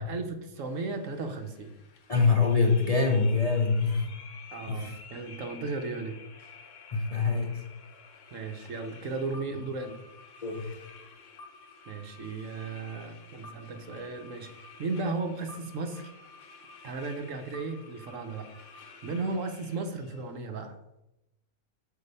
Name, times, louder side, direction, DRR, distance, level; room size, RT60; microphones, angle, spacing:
voice 1, 0.0-1.7 4.5-6.2 8.3-10.0 11.9-14.5 14.8-16.1 16.8-18.6 19.0-20.7, right 3 dB, 60° right, 6 dB, 1.1 m, -35 dB
sound 1, 0.5-20.3, left 5 dB, 60° left, 1.2 m, -51 dB
voice 2, 2.1-4.1 4.7-5.0 6.9-7.6 10.4-10.7, left 4 dB, 35° left, 0 dB, 0.6 m, -25 dB
6.8 x 4.6 x 5.4 m, 0.92 s
omnidirectional pair, 1.6 m